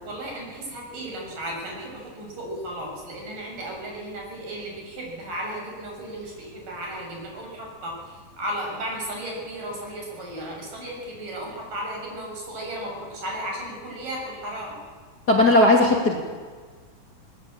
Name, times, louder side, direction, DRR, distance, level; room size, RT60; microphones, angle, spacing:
voice 1, 0.0-14.8, right 1 dB, 65° right, 0 dB, 8.2 m, -35 dB
voice 2, 15.3-16.2, left 1 dB, 30° left, 0 dB, 2.8 m, -17 dB
21.0 x 21.0 x 8.8 m, 1.5 s
omnidirectional pair, 4.1 m